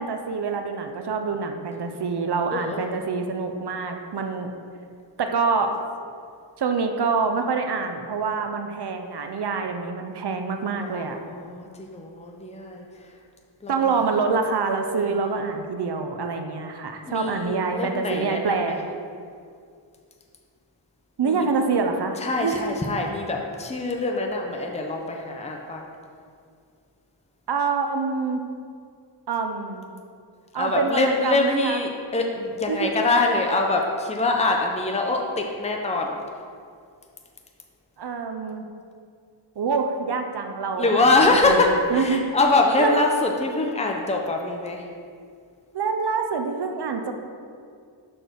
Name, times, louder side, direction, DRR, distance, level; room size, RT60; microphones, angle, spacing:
voice 1, 0.0-4.5 5.2-5.7 6.6-11.2 13.7-18.9 21.2-22.6 27.5-28.4 29.3-29.9 30.5-31.8 32.7-32.9 38.0-38.7 39.6-41.6 41.9-42.3 42.8-43.1 45.7-47.1, right 5 dB, 60° right, 5 dB, 0.6 m, -26 dB
voice 2, 2.5-3.0 10.8-12.8 13.6-13.8 15.0-15.5 17.1-18.8 21.2-21.5 22.2-25.8 30.6-36.2 40.8-44.8, left 2 dB, 15° left, 1 dB, 0.7 m, -24 dB
6.2 x 4.3 x 5.1 m, 2.3 s
wide cardioid pair, 45°, 46 cm